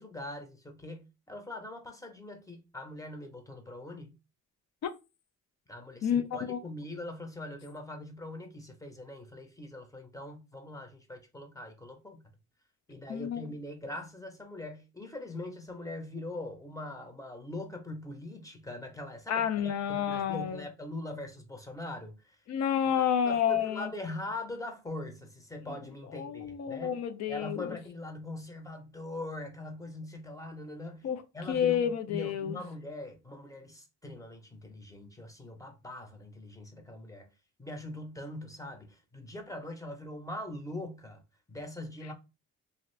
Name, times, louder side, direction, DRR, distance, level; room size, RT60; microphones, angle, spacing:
voice 1, 0.0-4.2 5.7-12.2 12.9-19.7 20.1-22.2 23.2-27.0 27.3-31.1 31.3-37.3 37.6-41.2 41.5-42.1, left 1 dB, 10° left, 0.8 m, -42 dB
voice 2, 6.0-6.6 13.1-13.5 19.3-20.7 22.5-23.9 26.1-27.8 31.0-31.2 31.5-32.6, left 8 dB, 60° left, 0.6 m, -30 dB
2.6 x 2.5 x 3.2 m
cardioid pair, 90°, 30 cm